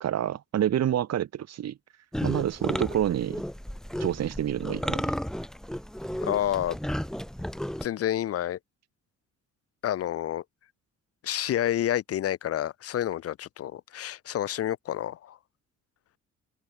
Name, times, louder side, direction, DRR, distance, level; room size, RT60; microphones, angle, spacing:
voice 1, 0.0-1.8 2.2-3.4 4.0-5.1, right 10 dB, 60° right, 1.3 m, -28 dB
sound 1, 2.1-7.9, equal, ahead, 1.1 m, -33 dB
voice 2, 6.2-6.8 7.8-8.6 9.8-10.4 11.2-15.4, left 11 dB, 50° left, 0.6 m, -29 dB
cardioid pair, 90°, 30 cm